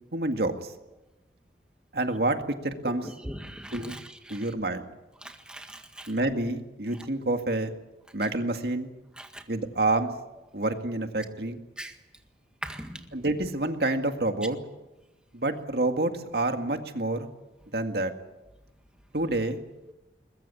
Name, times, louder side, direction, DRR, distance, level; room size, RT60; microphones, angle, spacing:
voice 1, 0.1-0.7 1.9-2.4 2.6-3.1 3.7-4.0 4.3-4.8 6.1-7.7 8.1-8.9 9.5-10.1 10.5-11.6 13.1-14.6 15.3-17.3 17.7-18.1 19.1-19.6, right 2 dB, 60° right, 6 dB, 2.0 m, -28 dB
voice 2, 3.0-4.5 5.2-6.1 9.2-9.4 11.8-11.9 12.6-13.0, right 1 dB, 5° right, 5 dB, 1.8 m, -40 dB
22.0 x 21.5 x 8.6 m, 0.97 s
head